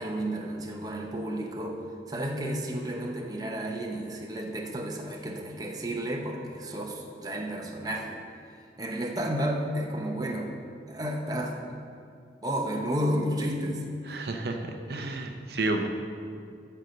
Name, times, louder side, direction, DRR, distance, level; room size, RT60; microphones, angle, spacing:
voice 1, 0.0-1.8 2.1-8.2 8.8-10.5 10.9-11.5 12.4-13.8, right 1 dB, 20° right, 1 dB, 0.8 m, -32 dB
voice 2, 14.1-15.9, right 2 dB, 65° right, 4 dB, 0.7 m, -31 dB
13.0 x 4.4 x 6.4 m, 2.4 s
head